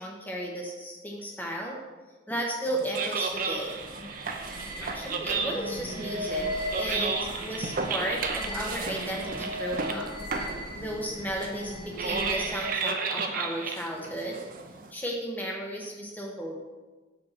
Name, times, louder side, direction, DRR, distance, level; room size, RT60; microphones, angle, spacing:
voice 1, 0.0-1.8 2.3-3.8 4.8-10.1 10.7-14.4 14.9-16.6, right 1 dB, 10° left, -1 dB, 1.0 m, -34 dB
sound 1, 2.7-14.9, right 4 dB, 50° right, 0.6 m, -33 dB
sound 2, 3.2-12.9, equal, 45° left, 2.4 m, -37 dB
5.2 x 4.6 x 5.8 m, 1.2 s
head